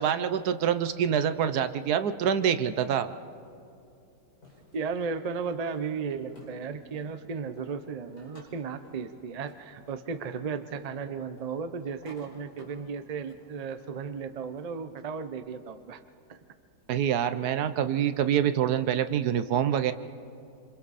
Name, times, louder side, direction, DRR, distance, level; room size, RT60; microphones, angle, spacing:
voice 1, 0.0-3.1 16.9-19.9, right 9 dB, 65° right, 11 dB, 1.2 m, -26 dB
sound 1, 4.4-15.0, left 1 dB, 50° left, 5.8 m, -56 dB
voice 2, 4.7-16.0 16.3-16.4, right 5 dB, 85° right, 9 dB, 0.3 m, -35 dB
27.0 x 26.0 x 4.2 m, 2.6 s
omnidirectional pair, 2.0 m